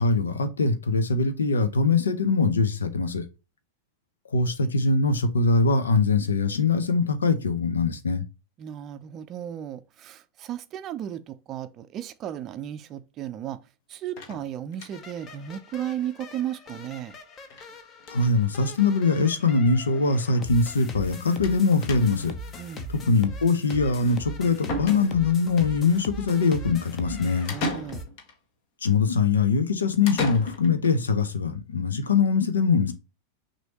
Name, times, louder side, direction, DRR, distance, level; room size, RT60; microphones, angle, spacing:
voice 1, 0.0-3.2 4.3-8.2 18.1-22.3 22.9-27.5 28.8-32.9, left 4 dB, 70° left, 0.7 m, -22 dB
voice 2, 8.6-13.6 13.9-17.2 22.6-22.9 27.5-28.0, right 10 dB, 30° right, 0.5 m, -35 dB
sound 1, 14.2-15.2 15.5-15.6 15.9-16.0 16.2-16.3 17.5-17.7 18.0-18.4 19.2-19.3 19.6-19.7 21.4-21.6 21.9-22.4 24.2-24.3 24.7-25.5 27.5-28.4 30.1-30.9, left 1 dB, 45° left, 1.2 m, -34 dB
sound 2, 14.9-28.0, left 2 dB, 30° left, 0.9 m, -40 dB
6.1 x 2.8 x 2.9 m
figure-of-eight pair, 90°, 0 cm